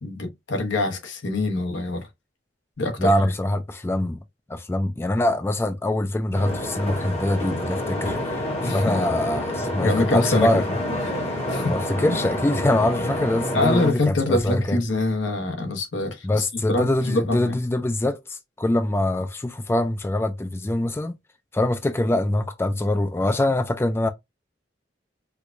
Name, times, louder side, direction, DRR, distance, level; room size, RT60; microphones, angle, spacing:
voice 1, 0.0-2.1 2.8-3.1 8.5-9.0 9.8-10.6 11.0-11.2 11.5-11.7 13.5-17.6, left 2 dB, 85° left, 1.0 m, -25 dB
voice 2, 3.0-4.2 4.5-10.8 11.1-11.2 11.6-14.8 16.2-21.2 21.5-24.1, left 1 dB, 15° left, 0.3 m, -24 dB
sound 1, 6.3-13.9, left 1 dB, 35° left, 0.9 m, -28 dB
4.6 x 2.2 x 2.5 m
head